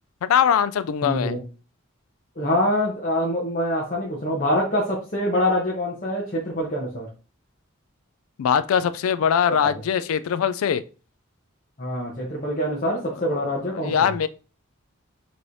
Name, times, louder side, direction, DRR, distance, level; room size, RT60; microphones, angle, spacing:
voice 1, 0.2-1.4 8.4-10.8 13.2-13.3 13.7-14.3, left 8 dB, 85° left, 0.3 m, -22 dB
voice 2, 1.0-1.4 2.4-7.1 9.6-9.7 11.8-14.1, left 1 dB, 40° left, 0.8 m, -25 dB
4.7 x 3.0 x 2.6 m
head